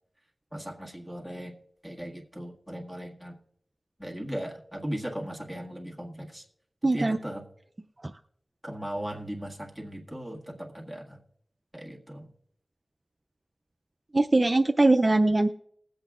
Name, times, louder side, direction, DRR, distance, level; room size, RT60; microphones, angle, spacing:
voice 1, 0.5-1.6 1.8-3.4 4.0-6.4 6.9-7.5 8.6-11.2 11.7-12.3, equal, ahead, 0 dB, 1.8 m, -37 dB
voice 2, 6.8-7.2 8.0-8.1 14.1-15.5, right 2 dB, 35° right, 6 dB, 0.4 m, -21 dB
20.0 x 7.9 x 2.4 m, 0.70 s
wide cardioid pair, 65°, 0 cm